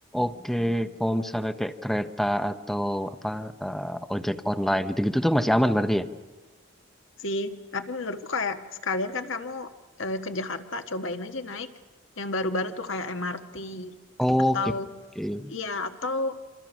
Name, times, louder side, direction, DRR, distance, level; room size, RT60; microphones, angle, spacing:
voice 1, 0.1-6.1 14.2-14.6 15.2-15.5, equal, ahead, 10 dB, 0.8 m, -26 dB
voice 2, 7.2-9.7 10.0-11.7 12.2-13.9 14.5-14.9 15.5-16.4, left 2 dB, 70° left, 6 dB, 1.5 m, -31 dB
27.0 x 27.0 x 6.2 m, 1.3 s
head